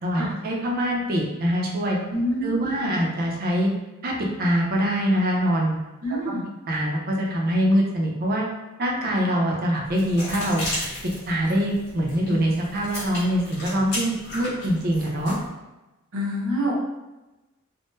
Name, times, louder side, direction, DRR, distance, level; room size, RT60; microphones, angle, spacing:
voice 1, 0.0-2.0 2.4-3.7 4.0-4.1 4.4-5.7 6.7-8.5 8.8-10.7 11.3-15.4, equal, 45° right, -1 dB, 0.6 m, -23 dB
voice 2, 2.1-2.9 6.0-6.4 16.1-16.7, equal, 75° right, -4 dB, 0.9 m, -27 dB
sound 1, 9.8-15.5, left 1 dB, 50° left, 1.3 m, -35 dB
3.5 x 2.1 x 2.6 m, 1.0 s
head